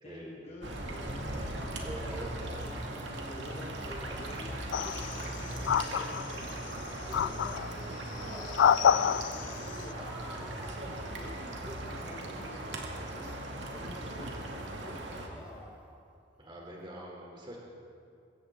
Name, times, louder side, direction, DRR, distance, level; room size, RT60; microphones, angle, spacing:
voice 1, 0.0-11.6 11.8-15.7, left 1 dB, 35° left, -3 dB, 1.4 m, -50 dB
sound 1, 0.6-15.3, right 1 dB, 70° right, 2.2 m, -39 dB
voice 2, 1.8-2.3 16.4-17.6, right 1 dB, 25° right, -2 dB, 3.2 m, -44 dB
sound 2, 2.0-2.3 3.1-3.4 3.8-4.3 4.8-5.1 5.6-5.9 6.3-6.5 7.1-7.3 8.2-8.5 9.1-9.4 9.9-11.2 11.6-11.9 12.4-12.6 13.1-13.2 13.7-13.9 14.5-14.6 15.3-16.4 16.6-16.8, equal, 5° right, 1.5 m, -51 dB
sound 3, 4.7-5.3 5.6-6.5 7.1-7.7 8.3-9.5, left 8 dB, 75° left, 0.3 m, -27 dB
21.0 x 17.0 x 3.7 m, 2.4 s
head